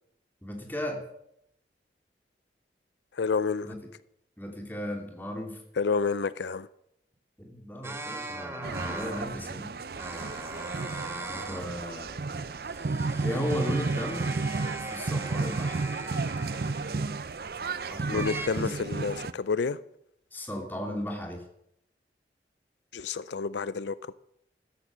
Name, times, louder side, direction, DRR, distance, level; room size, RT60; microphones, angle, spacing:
voice 1, 0.4-1.0 3.6-3.8 4.4-5.6 7.4-9.7 11.3-12.1 13.2-14.3 14.8-15.8 17.9-18.3 18.5-18.8 20.3-21.4, equal, 10° left, 2.8 m, -35 dB
voice 2, 3.1-3.7 5.8-6.7 18.1-19.8 22.9-24.1, left 5 dB, 85° left, 0.5 m, -29 dB
sound 1, 7.8-9.4 9.9-11.7 12.1-17.6 18.1-18.5, right 2 dB, 15° right, 1.4 m, -40 dB
sound 2, 8.6-19.3, right 3 dB, 55° right, 0.6 m, -32 dB
14.5 x 14.0 x 6.3 m
head